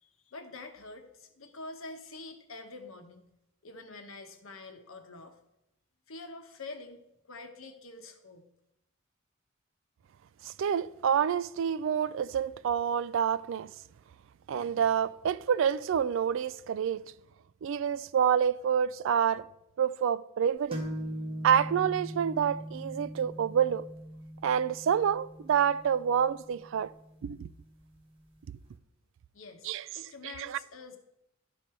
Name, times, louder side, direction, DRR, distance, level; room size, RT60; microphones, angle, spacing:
voice 1, 0.0-3.2 3.6-5.4 6.1-8.4 29.3-31.0, left 3 dB, 80° left, 1.1 m, -46 dB
voice 2, 10.4-13.7 14.5-17.1 17.6-19.4 19.8-20.9 21.4-23.9 24.4-26.9 27.2-27.5 29.6-29.8 30.4-30.6, right 8 dB, 65° right, 0.3 m, -28 dB
sound 1, 20.7-28.2, equal, 30° right, 1.3 m, -41 dB
11.5 x 5.3 x 4.5 m
head